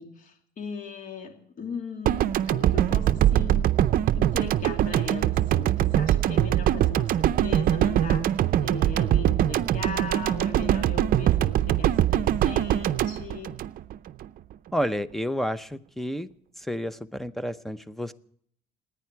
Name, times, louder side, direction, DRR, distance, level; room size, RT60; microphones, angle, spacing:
voice 1, 0.0-3.7 4.1-13.6, left 5 dB, 50° left, 4 dB, 2.6 m, -38 dB
sound 1, 2.1-14.3, right 12 dB, 60° right, 0.6 m, -23 dB
voice 2, 14.7-16.3 16.6-18.1, equal, ahead, 14 dB, 0.7 m, -30 dB
29.0 x 9.9 x 4.6 m, 0.63 s
cardioid pair, 110°, 17 cm